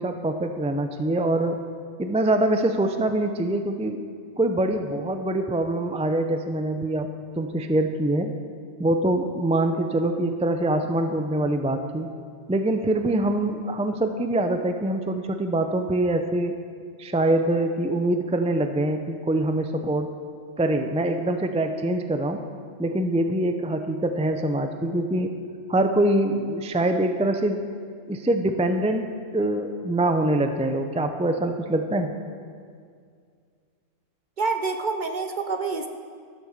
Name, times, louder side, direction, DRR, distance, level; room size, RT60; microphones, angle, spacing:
voice 1, 0.0-1.6 2.0-4.0 4.4-7.1 7.4-8.3 8.8-12.1 12.5-16.5 17.0-20.1 20.6-22.4 22.8-25.4 25.7-27.6 28.1-32.1, right 1 dB, 10° right, 6 dB, 0.3 m, -24 dB
voice 2, 34.4-35.9, right 4 dB, 50° right, 7 dB, 0.7 m, -27 dB
12.5 x 8.9 x 6.6 m, 2.1 s
omnidirectional pair, 1.3 m